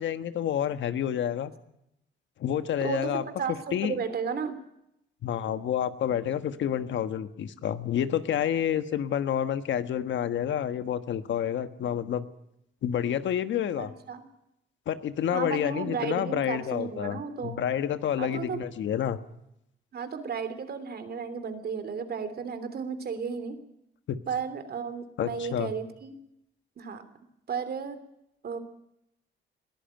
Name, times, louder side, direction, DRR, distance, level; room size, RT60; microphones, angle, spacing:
voice 1, 0.0-1.5 2.4-3.2 3.7-4.0 5.2-12.3 12.8-13.9 14.9-19.2 24.1-24.2 25.2-25.7, left 9 dB, 70° left, 11 dB, 1.4 m, -29 dB
voice 2, 2.8-4.6 13.8-14.3 15.3-17.6 18.2-18.6 19.9-23.6 24.3-26.1 26.8-27.0 27.5-28.0 28.4-28.6, right 6 dB, 55° right, 10 dB, 3.1 m, -34 dB
21.0 x 14.0 x 9.1 m, 0.82 s
cardioid pair, 90°, 20 cm